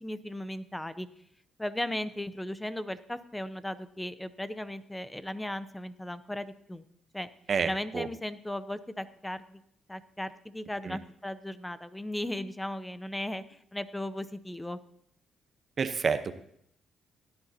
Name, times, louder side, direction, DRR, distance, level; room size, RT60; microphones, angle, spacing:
voice 1, 0.0-1.1 1.6-6.8 7.1-7.3 7.6-9.6 9.9-14.8, left 1 dB, 10° left, 14 dB, 0.6 m, -36 dB
voice 2, 15.8-16.3, right 6 dB, 45° right, 10 dB, 0.9 m, -28 dB
17.0 x 11.0 x 2.8 m, 0.71 s
cardioid pair, 90°, 0 cm